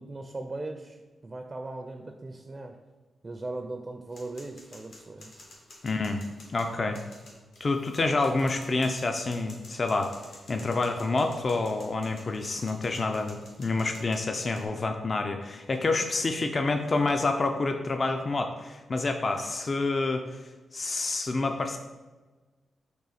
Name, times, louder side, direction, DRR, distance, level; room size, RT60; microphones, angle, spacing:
voice 1, 0.0-2.8 3.2-5.3, right 2 dB, 35° right, 5 dB, 0.4 m, -39 dB
sound 1, 4.1-14.7, left 1 dB, 80° left, 1.2 m, -51 dB
voice 2, 5.8-6.2 6.5-7.0 7.6-10.1 10.5-20.4 20.7-21.8, left 3 dB, 45° left, 5 dB, 0.3 m, -28 dB
4.0 x 2.7 x 4.0 m, 1.3 s
cardioid pair, 55°, 0 cm